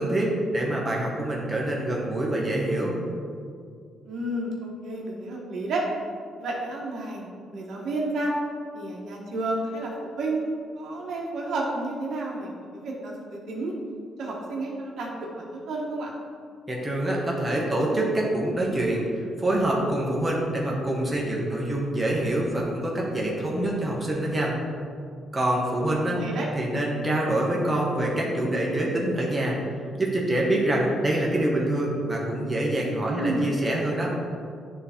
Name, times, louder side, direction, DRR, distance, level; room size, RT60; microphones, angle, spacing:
voice 1, 0.0-2.9 16.7-24.5 25.3-26.2 26.5-29.6 30.0-34.1, right 1 dB, 15° right, -3 dB, 1.4 m, -25 dB
voice 2, 4.0-5.8 6.4-8.3 8.7-13.7 14.2-16.1 25.8-25.9 26.2-26.5 33.1-33.5, right 2 dB, 65° right, -3 dB, 1.2 m, -31 dB
9.8 x 3.3 x 4.3 m, 2.2 s
cardioid pair, 90°, 0 cm